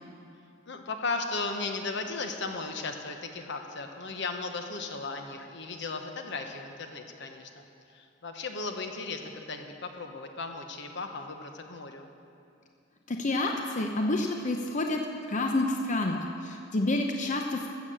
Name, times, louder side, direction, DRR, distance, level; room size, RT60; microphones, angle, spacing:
voice 1, 0.6-7.6 7.9-12.1, left 3 dB, 65° left, 5 dB, 1.0 m, -36 dB
voice 2, 13.1-17.7, left 2 dB, 40° left, 3 dB, 0.7 m, -29 dB
13.0 x 7.4 x 7.5 m, 2.5 s
head